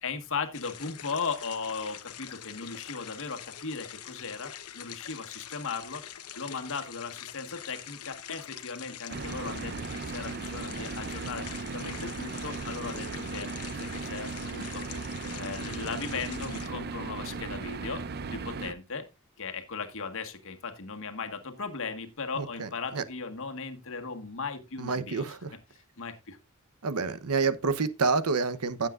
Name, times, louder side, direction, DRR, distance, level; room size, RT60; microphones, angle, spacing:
voice 1, 0.0-6.0 6.3-14.8 15.3-18.0 18.3-19.1 19.4-25.2 25.7-26.4, left 5 dB, 65° left, 1.5 m, -37 dB
sound 1, 0.5-16.7, left 10 dB, 85° left, 1.0 m, -44 dB
sound 2, 9.1-18.7, right 4 dB, 45° right, 0.6 m, -37 dB
voice 2, 22.4-23.0 24.8-25.6 26.8-28.9, right 4 dB, 85° right, 0.9 m, -28 dB
15.5 x 7.4 x 2.5 m
head